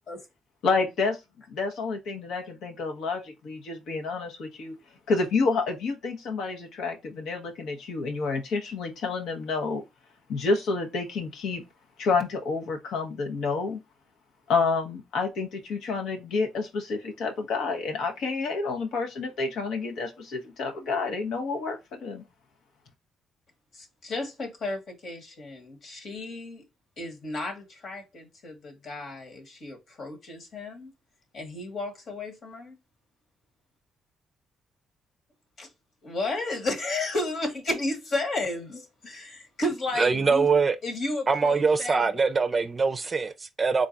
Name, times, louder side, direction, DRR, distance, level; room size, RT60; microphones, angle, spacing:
voice 1, 0.6-1.2 1.5-4.7 5.1-9.8 10.3-11.6 12.0-13.8 14.5-22.2, left 4 dB, 80° left, 0.9 m, -29 dB
voice 2, 23.7-26.7 27.0-30.9 31.3-32.8 35.6-35.7 36.0-40.5 40.8-42.2, left 2 dB, 55° left, 1.4 m, -33 dB
voice 3, 40.0-40.8 41.3-43.9, right 4 dB, 35° right, 0.4 m, -23 dB
3.8 x 2.3 x 4.0 m
cardioid pair, 90°, 0 cm